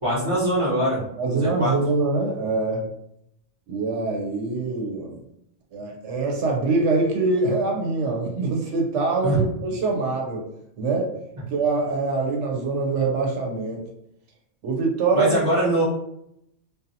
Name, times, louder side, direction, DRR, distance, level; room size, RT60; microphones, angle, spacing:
voice 1, 0.0-1.7 9.2-9.4 15.1-15.8, right 1 dB, 30° right, -7 dB, 1.1 m, -23 dB
voice 2, 1.2-2.9 3.7-5.2 5.7-10.4 10.8-11.1 11.5-13.8 14.6-15.4, right 3 dB, 85° right, 0 dB, 1.0 m, -24 dB
2.7 x 2.2 x 2.6 m, 0.75 s
omnidirectional pair, 1.2 m